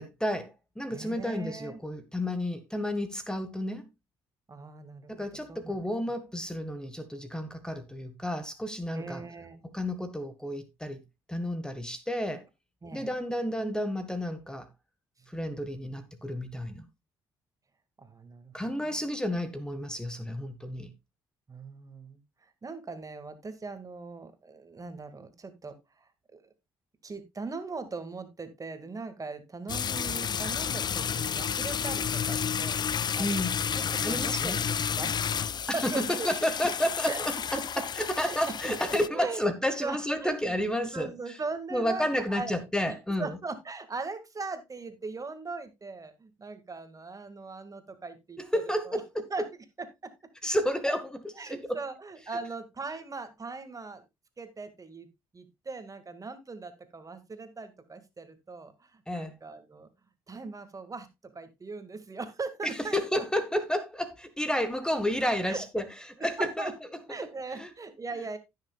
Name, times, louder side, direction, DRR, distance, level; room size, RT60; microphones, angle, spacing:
voice 1, 0.0-3.9 5.1-9.2 9.7-11.0 11.3-12.4 12.9-14.7 15.3-16.8 18.5-20.9 33.2-33.5 34.0-34.6 35.7-41.4 41.7-43.4 48.4-49.2 50.4-51.8 59.1-59.4 62.6-67.0 67.5-67.7, equal, 5° left, 1.4 m, -31 dB
voice 2, 0.9-1.8 4.5-5.9 8.9-9.6 12.8-13.1 18.0-18.9 21.5-22.2 22.6-26.4 27.0-33.4 33.7-35.4 35.7-36.3 37.0-37.2 37.5-37.8 38.2-38.4 38.6-39.4 39.8-40.5 40.9-42.5 42.9-49.0 49.3-49.5 49.8-50.1 50.9-51.0 51.4-54.0 54.4-55.1 55.3-59.9 60.3-63.2 65.5-65.7 66.2-66.7 67.1-68.4, right 4 dB, 30° right, 2.0 m, -40 dB
sound 1, 29.7-39.1, left 7 dB, 40° left, 0.4 m, -31 dB
16.0 x 6.6 x 2.3 m
hypercardioid pair, 55°, 11 cm